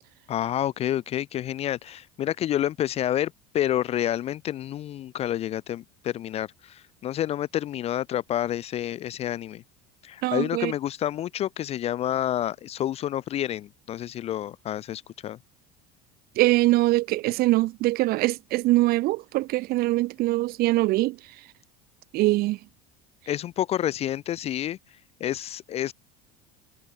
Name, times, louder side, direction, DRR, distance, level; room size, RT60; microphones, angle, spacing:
voice 1, 0.3-9.6 10.0-15.4 23.3-24.8 25.2-25.9, left 11 dB, 30° left, 0.3 m, -29 dB
voice 2, 10.2-10.7 16.4-21.2 22.1-22.6, right 19 dB, 50° right, 0.5 m, -23 dB
supercardioid pair, 130°, 21 cm